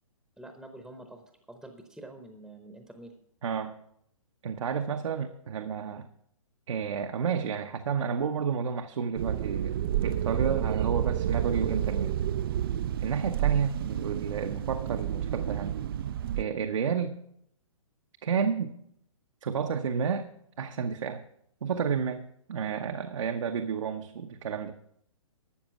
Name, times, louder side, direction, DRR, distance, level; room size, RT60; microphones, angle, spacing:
voice 1, 0.4-3.1, right 1 dB, ahead, 5 dB, 0.9 m, -47 dB
voice 2, 3.4-3.7 4.4-6.1 6.7-12.1 13.0-15.8 16.4-17.1 18.2-18.8 19.4-20.2 20.6-21.2 21.6-24.7, right 6 dB, 65° right, 5 dB, 0.9 m, -31 dB
sound 1, 9.2-16.4, right 10 dB, 45° right, 0.4 m, -30 dB
13.0 x 7.3 x 5.9 m, 0.72 s
hypercardioid pair, 135°, 17 cm